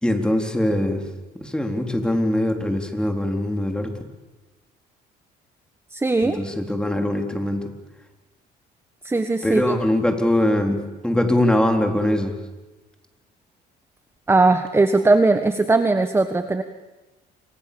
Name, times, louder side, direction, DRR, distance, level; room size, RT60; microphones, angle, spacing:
voice 1, 0.0-1.0 1.4-3.9 6.2-7.7 9.4-12.3, left 1 dB, 5° left, 4 dB, 4.0 m, -22 dB
voice 2, 5.9-6.4 9.0-9.7 14.3-16.6, right 3 dB, 15° right, 9 dB, 1.4 m, -19 dB
28.5 x 26.0 x 7.1 m, 1.1 s
cardioid pair, 110°, 17 cm